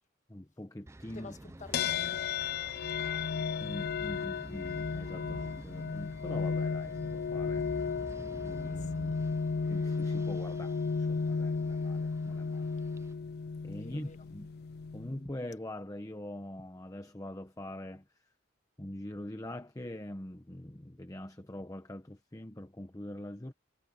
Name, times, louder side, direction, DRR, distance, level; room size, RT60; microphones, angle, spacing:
voice 1, 0.3-1.3 3.6-7.7 8.4-9.2 9.7-12.7 13.6-14.5 14.9-18.0 18.8-23.5, left 1 dB, 20° left, 1.0 m, -43 dB
sound 1, 0.9-13.1, right 1 dB, 15° right, 0.5 m, -49 dB
voice 2, 1.1-2.6 8.6-9.2 13.7-14.3, left 3 dB, 40° left, 1.6 m, -50 dB
sound 2, 1.7-15.3, left 5 dB, 55° left, 0.4 m, -34 dB
head